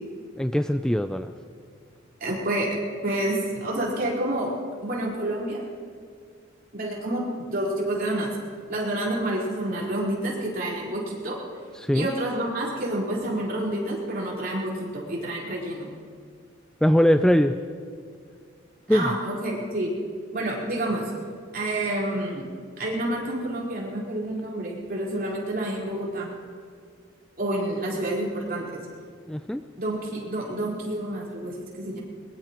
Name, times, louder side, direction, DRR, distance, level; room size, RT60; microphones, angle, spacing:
voice 1, 0.4-1.3 11.8-12.1 16.8-17.5 18.9-19.1 29.3-29.6, equal, 5° left, 9 dB, 0.3 m, -21 dB
voice 2, 2.2-2.7 3.0-4.5 4.8-5.6 6.7-8.3 8.7-11.4 11.9-15.9 18.9-19.9 20.3-21.1 21.5-22.5 22.8-26.3 27.4-28.8 29.8-32.0, right 1 dB, 50° right, -4 dB, 4.4 m, -28 dB
22.0 x 21.5 x 3.0 m, 2.1 s
head